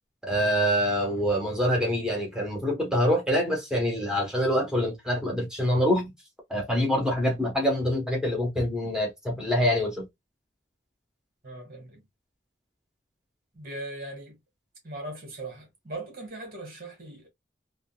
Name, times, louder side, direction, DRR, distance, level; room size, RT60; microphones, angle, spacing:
voice 1, 0.2-6.1 6.5-10.1, equal, 5° right, 1.0 m, -25 dB
voice 2, 11.4-12.0 13.5-14.4 14.8-17.3, right 2 dB, 50° right, 1.6 m, -39 dB
3.6 x 2.3 x 2.2 m
head